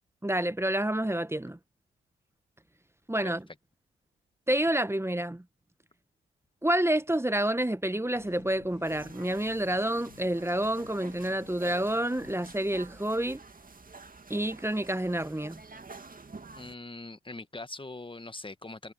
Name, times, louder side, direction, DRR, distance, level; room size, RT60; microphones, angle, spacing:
voice 1, 0.2-1.6 3.1-3.4 4.5-5.4 6.6-13.4 14.3-15.6, right 1 dB, 10° right, 1.3 m, -28 dB
sound 1, 8.2-12.5, left 14 dB, 70° left, 2.3 m, -55 dB
sound 2, 8.8-16.7, right 4 dB, 30° right, 2.3 m, -49 dB
voice 2, 16.5-18.9, left 2 dB, 15° left, 1.8 m, -42 dB
hypercardioid pair, 40°, 29 cm